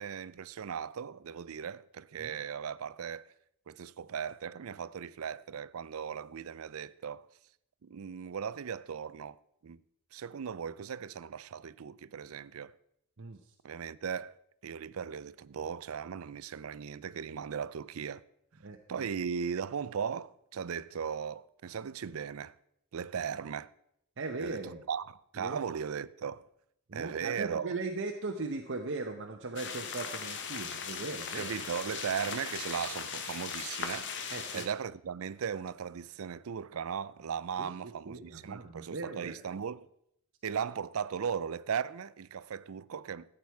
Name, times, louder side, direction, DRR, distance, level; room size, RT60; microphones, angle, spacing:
voice 1, 0.0-3.3 3.7-7.3 7.8-9.8 10.1-12.7 13.6-14.4 14.6-18.2 18.9-22.6 22.9-23.7 24.4-26.4 26.9-27.7 31.3-39.9 40.4-43.4, right 7 dB, 75° right, 0.5 m, -37 dB
voice 2, 13.2-13.5 18.6-19.1 24.2-24.8 25.4-25.6 26.9-31.5 34.3-34.6 37.6-39.3, right 3 dB, 60° right, 0.8 m, -39 dB
sound 1, 29.6-34.7, left 6 dB, 60° left, 1.2 m, -39 dB
14.0 x 8.8 x 4.6 m
head